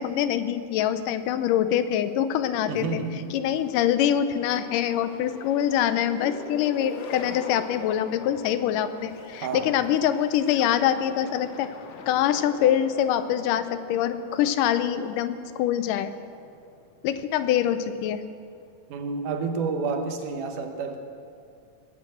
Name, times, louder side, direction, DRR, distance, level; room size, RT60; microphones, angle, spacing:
voice 1, 0.0-3.0 3.3-11.7 12.1-16.1 17.0-18.2, left 10 dB, 85° left, 11 dB, 2.3 m, -24 dB
voice 2, 2.7-3.4 9.4-9.8 18.9-21.0, right 4 dB, 80° right, 6 dB, 2.7 m, -30 dB
sound 1, 3.5-17.1, left 5 dB, 65° left, 2.0 m, -42 dB
19.0 x 8.9 x 7.8 m, 2.3 s
omnidirectional pair, 3.7 m